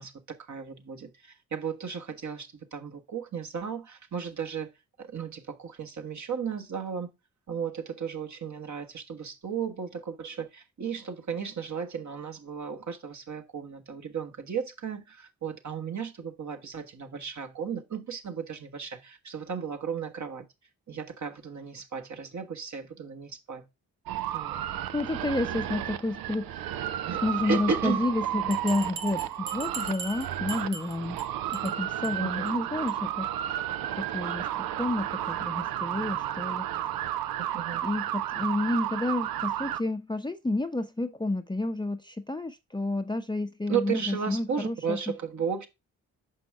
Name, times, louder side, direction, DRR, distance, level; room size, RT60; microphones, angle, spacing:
voice 1, 0.0-4.7 5.0-7.1 7.5-20.4 20.9-23.6 24.3-24.6 27.1-28.0 32.2-32.5 37.4-37.8 43.7-45.7, right 6 dB, 45° right, 1.5 m, -35 dB
sound 1, 24.1-39.8, right 12 dB, 60° right, 0.6 m, -32 dB
voice 2, 24.5-26.7 27.2-31.2 31.5-33.3 33.9-34.5 34.7-36.7 37.8-45.1, left 2 dB, 10° left, 0.8 m, -30 dB
Bell, 28.5-31.2 31.5-31.7 32.0-32.1 32.5-32.6 32.9-33.0, right 5 dB, 80° right, 1.0 m, -40 dB
6.2 x 5.4 x 3.5 m
hypercardioid pair, 40°, 40 cm